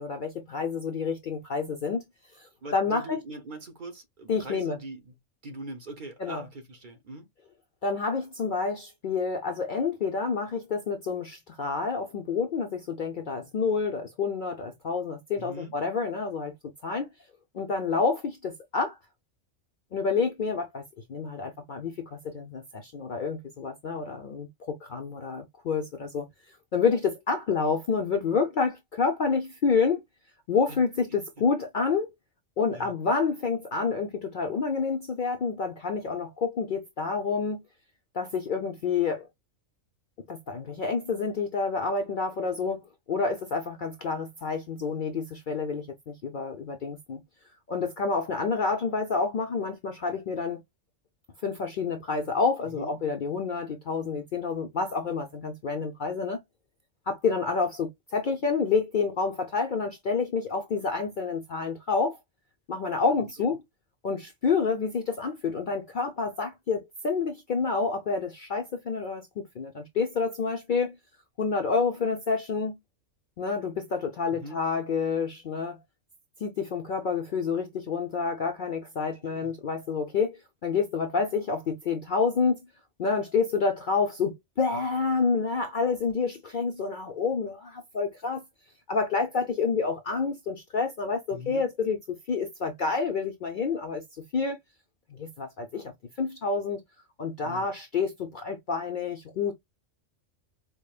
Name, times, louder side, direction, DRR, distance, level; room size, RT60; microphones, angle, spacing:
voice 1, 0.0-2.0 2.3-3.2 4.3-4.8 6.2-6.4 7.8-16.5 16.8-17.1 17.5-19.0 19.9-20.8 21.1-30.0 30.5-32.1 32.6-37.6 38.1-39.3 40.3-47.2 47.7-50.6 51.4-56.4 57.1-62.2 62.7-63.6 64.0-71.0 71.4-72.8 73.4-75.8 76.4-82.6 83.0-88.4 88.9-92.0 92.3-94.6 95.1-95.9 96.2-96.8 97.2-99.5, left 5 dB, 55° left, 0.6 m, -28 dB
voice 2, 2.6-5.1 5.4-7.3 15.4-15.7 30.7-30.8 31.4-31.5 32.7-32.9 52.6-53.0 63.0-63.6 74.3-74.6 79.2-79.5 91.3-91.7 97.4-97.7, right 1 dB, 45° right, 0.9 m, -42 dB
5.0 x 2.2 x 2.3 m
omnidirectional pair, 1.3 m